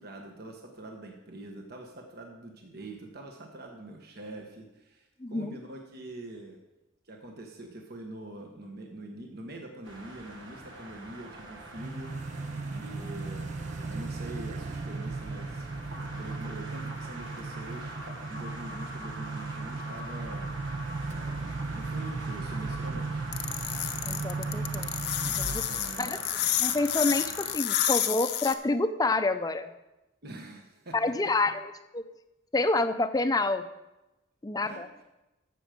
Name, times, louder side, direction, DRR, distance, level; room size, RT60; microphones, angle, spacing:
voice 1, 0.0-6.6 7.0-12.1 12.7-15.7 15.9-20.5 21.1-23.4 25.6-26.2 30.2-31.0 31.4-31.5 34.6-34.8, right 1 dB, 55° right, 2 dB, 1.3 m, -44 dB
voice 2, 5.2-5.6 12.9-13.1 24.0-24.9 25.4-25.6 26.0-26.2 26.6-29.7 30.9-32.0 32.5-33.6 34.4-34.9, left 2 dB, 20° left, 10 dB, 0.6 m, -28 dB
sound 1, 9.8-27.6, right 1 dB, 80° right, 1.9 m, -43 dB
sound 2, 11.8-26.0, right 3 dB, 40° right, 0.4 m, -36 dB
sound 3, 23.3-28.5, left 12 dB, 60° left, 0.7 m, -29 dB
12.5 x 7.7 x 5.1 m, 0.98 s
head